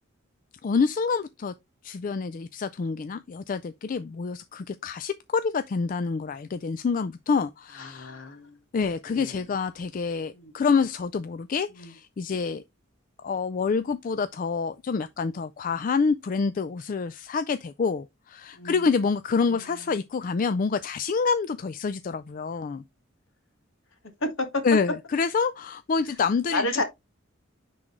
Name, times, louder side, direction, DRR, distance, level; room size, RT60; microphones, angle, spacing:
voice 1, 0.6-1.5 1.8-8.2 8.7-12.6 13.2-22.8 24.6-26.8, left 5 dB, 40° left, 0.3 m, -27 dB
voice 2, 7.8-8.6 9.1-9.4 10.3-10.5 11.8-11.9 18.5-18.8 19.5-19.6 24.2-24.6 26.5-26.8, left 2 dB, 70° left, 1.6 m, -30 dB
9.6 x 3.8 x 3.1 m
head